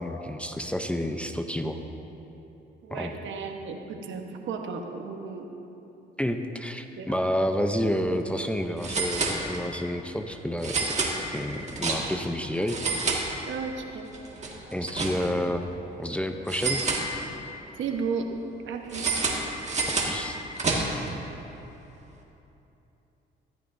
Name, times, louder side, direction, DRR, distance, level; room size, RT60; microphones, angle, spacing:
voice 1, 0.0-1.8 2.9-3.2 6.2-10.9 11.3-12.8 14.7-15.7 16.0-16.8 20.0-20.4, equal, 5° left, 6 dB, 0.6 m, -29 dB
voice 2, 2.8-5.5 7.0-7.2 13.5-14.1 17.8-18.3 18.7-19.2, right 5 dB, 75° right, 3 dB, 1.2 m, -34 dB
sound 1, 7.6-7.8 8.1-8.2 8.8-9.9 10.6-12.3 12.6-13.8 14.1-15.5 16.5-17.6 18.9-21.1, right 3 dB, 35° right, 1.8 m, -29 dB
15.0 x 14.0 x 2.6 m, 3.0 s
cardioid pair, 90°, 20 cm